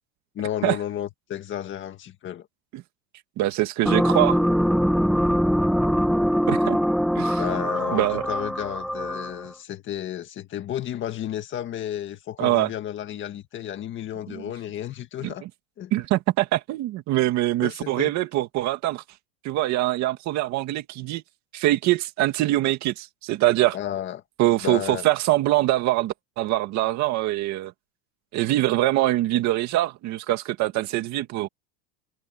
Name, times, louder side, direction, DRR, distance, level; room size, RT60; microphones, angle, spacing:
voice 1, 0.3-2.5 7.4-15.5 15.8-15.9 17.6-18.1 23.7-24.2 24.6-25.1, left 11 dB, 25° left, 1.7 m, -32 dB
voice 2, 3.4-4.4 6.5-6.8 7.2-7.4 7.9-8.2 12.4-12.7 14.3-14.4 15.2-15.5 15.9-19.0 19.4-21.2 21.5-23.8 24.4-27.7 28.3-31.5, right 16 dB, 35° right, 2.1 m, -23 dB
sound 1, 3.8-9.5, equal, ahead, 0.9 m, -23 dB
supercardioid pair, 170°, 46 cm